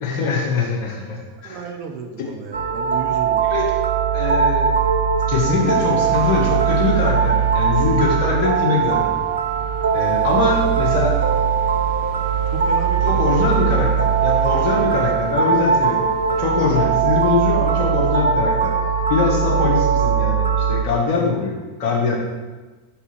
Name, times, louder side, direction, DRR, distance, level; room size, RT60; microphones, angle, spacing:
voice 1, 0.0-1.6 3.5-3.7 4.1-4.7 5.3-9.2 9.9-11.1 13.0-18.7 19.1-22.2, left 4 dB, 45° left, -2 dB, 1.4 m, -22 dB
voice 2, 1.4-3.6 5.3-5.9 10.6-10.9 12.5-13.8 14.9-15.0, right 6 dB, 50° right, 4 dB, 0.8 m, -32 dB
sound 1, 2.5-20.8, right 7 dB, 75° right, 0.5 m, -20 dB
sound 2, 5.5-18.1, right 4 dB, 20° right, 1.6 m, -39 dB
5.2 x 4.5 x 4.4 m, 1.2 s
figure-of-eight pair, 90°, 0 cm